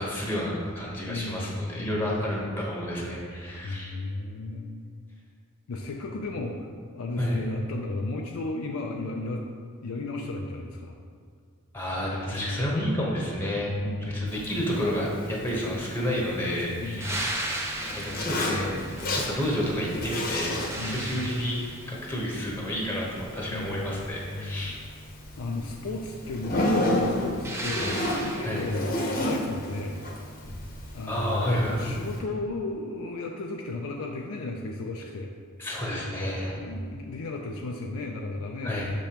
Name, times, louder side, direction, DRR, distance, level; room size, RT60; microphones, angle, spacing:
voice 1, 0.0-3.9 6.1-6.2 7.2-7.4 11.7-17.4 17.9-18.8 19.1-21.6 21.9-24.8 28.4-28.7 31.1-31.9 35.6-36.6 38.6-38.9, equal, 10° left, -4 dB, 0.9 m, -30 dB
voice 2, 1.1-2.3 3.6-4.8 5.7-6.7 6.9-9.4 9.8-11.0 12.3-12.7 13.8-14.5 16.8-17.3 20.8-21.2 23.5-24.0 24.3-24.8 25.4-30.0 30.9-35.3 36.5-38.8, left 2 dB, 70° left, 1 dB, 0.4 m, -34 dB
Zipper (clothing), 14.3-32.2, left 1 dB, 40° left, 0.8 m, -33 dB
sound 1, 17.0-19.9 20.3-22.1 27.4-28.9 31.5-31.6, right 1 dB, 10° right, 0.5 m, -36 dB
6.8 x 5.2 x 2.9 m, 2.2 s
head